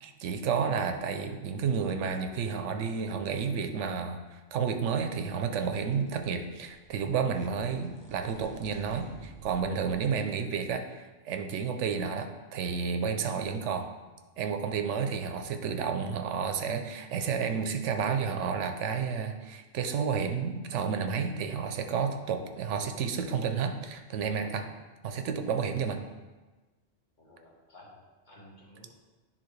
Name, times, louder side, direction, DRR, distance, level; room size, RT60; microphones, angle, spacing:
voice 1, 0.0-13.9 14.4-24.7 25.0-26.0, right 6 dB, 85° right, 7 dB, 0.9 m, -31 dB
sound 1, 5.5-6.4 6.7-10.1 10.7-10.8, right 2 dB, 15° right, 0.9 m, -50 dB
voice 2, 27.2-28.9, left 1 dB, 40° left, -4 dB, 1.5 m, -54 dB
10.0 x 3.8 x 3.2 m, 1.2 s
omnidirectional pair, 1.2 m